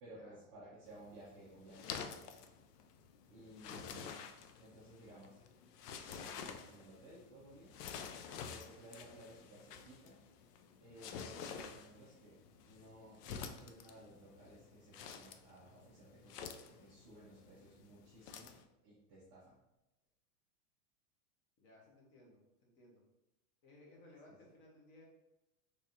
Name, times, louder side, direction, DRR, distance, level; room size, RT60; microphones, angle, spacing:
voice 1, 0.0-2.3 3.3-4.2 4.6-5.4 5.9-7.7 8.4-10.2 10.8-19.6, right 1 dB, 20° right, -9 dB, 0.3 m, -57 dB
sound 1, 0.9-18.6, left 7 dB, 85° left, 0.6 m, -50 dB
voice 2, 21.6-23.0 23.6-25.0, left 2 dB, 40° left, -2 dB, 1.2 m, -61 dB
3.4 x 3.4 x 2.7 m, 0.93 s
supercardioid pair, 155°, 47 cm